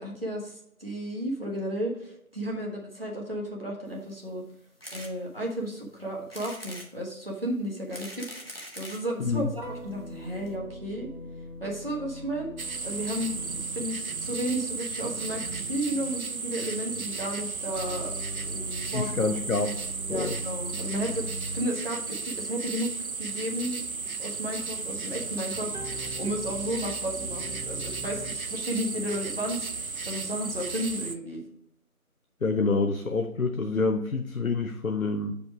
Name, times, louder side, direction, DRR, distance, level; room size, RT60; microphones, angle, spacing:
voice 1, 0.0-4.4 4.9-8.2 8.5-11.1 11.6-12.5 12.8-13.3 13.7-18.1 18.5-19.1 20.1-22.9 23.2-23.8 24.2-31.4, equal, 40° right, -2 dB, 1.3 m, -33 dB
sound 1, 4.8-5.1 5.6-5.7 6.3-6.9 7.6-9.1 9.9-10.0 10.2-10.3 10.5-10.6, equal, 40° left, 1.2 m, -42 dB
voice 2, 9.2-9.5 18.9-20.4 32.4-35.4, left 3 dB, 70° left, 6 dB, 0.7 m, -27 dB
sound 2, 9.6-14.3 17.7-22.0 25.7-28.4, equal, 90° right, 2.3 m, -41 dB
Wilderness Loop, 12.6-31.2, right 4 dB, 70° right, 0.7 m, -34 dB
6.2 x 5.2 x 4.7 m, 0.76 s
figure-of-eight pair, 180°, 44 cm